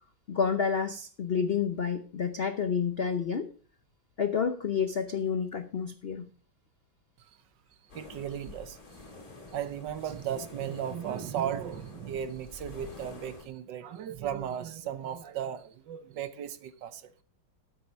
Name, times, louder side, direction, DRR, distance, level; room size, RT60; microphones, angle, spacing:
voice 1, 0.3-3.5 4.2-6.3, left 6 dB, 75° left, 0.5 m, -29 dB
sound 1, 7.9-13.4, left 2 dB, 45° left, 3.9 m, -48 dB
voice 2, 7.9-8.8 9.5-17.1, right 9 dB, 65° right, 1.5 m, -36 dB
13.0 x 8.1 x 5.2 m
omnidirectional pair, 2.2 m